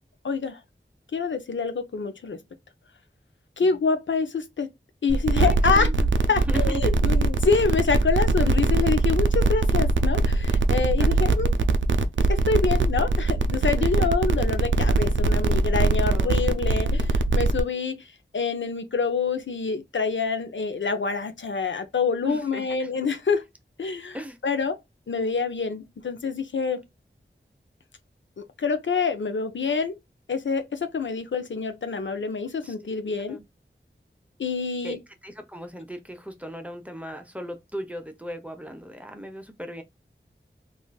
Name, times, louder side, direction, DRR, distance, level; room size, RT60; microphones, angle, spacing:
voice 1, 0.2-0.6 1.1-2.4 3.6-4.7 5.0-5.9 6.3-11.5 12.3-23.4 23.8-24.2 24.4-24.8 25.1-26.8 28.4-30.0 30.3-33.4 34.4-35.0, left 5 dB, 70° left, 0.5 m, -26 dB
sound 1, 5.1-17.6, right 3 dB, 75° right, 0.4 m, -22 dB
voice 2, 5.4-6.8 11.0-11.2 13.8-14.1 16.1-16.6 22.2-22.9 24.1-24.4 32.6-32.7 33.3-33.4 34.8-35.0 35.2-39.8, equal, 5° right, 0.7 m, -37 dB
3.7 x 2.5 x 2.2 m
wide cardioid pair, 50°, 20 cm